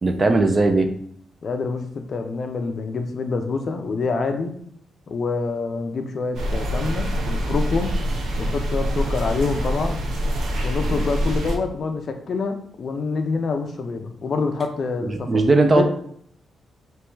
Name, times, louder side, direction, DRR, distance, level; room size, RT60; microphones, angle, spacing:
voice 1, 0.0-0.9 15.0-15.8, right 2 dB, 25° right, 6 dB, 0.4 m, -18 dB
voice 2, 1.4-4.6 5.1-8.0 8.4-10.1 10.6-15.4 15.7-15.8, left 4 dB, 45° left, 6 dB, 0.5 m, -26 dB
sound 1, 6.3-11.6, equal, 80° right, 0.8 m, -25 dB
3.5 x 3.0 x 4.5 m, 0.65 s
wide cardioid pair, 175°, 0 cm